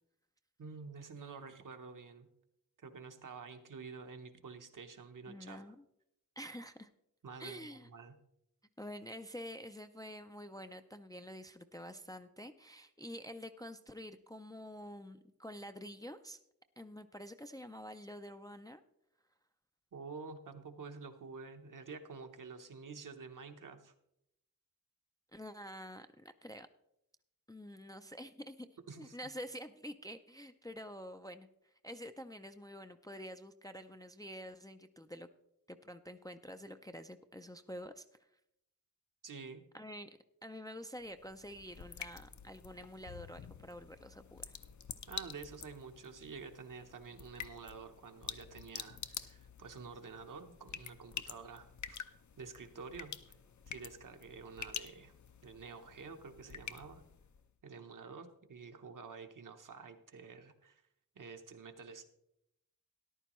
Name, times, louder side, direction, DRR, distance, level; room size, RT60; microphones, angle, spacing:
voice 1, 0.6-2.3 2.8-5.6 7.2-8.1 19.9-23.9 28.9-29.2 39.2-39.6 45.1-52.0 52.4-53.4 53.7-55.1 55.4-57.0 57.6-60.8 61.2-62.0, right 5 dB, 65° right, 6 dB, 0.9 m, -49 dB
voice 2, 5.3-5.8 6.4-6.9 7.4-7.9 8.8-16.4 16.8-18.8 25.3-26.7 27.5-28.7 29.0-31.5 31.8-35.3 35.7-38.0 39.7-44.6, equal, 10° left, 8 dB, 0.3 m, -48 dB
sound 1, 41.0-57.5, left 7 dB, 55° left, 0.6 m, -48 dB
13.5 x 11.0 x 3.0 m, 0.80 s
wide cardioid pair, 115°, 35 cm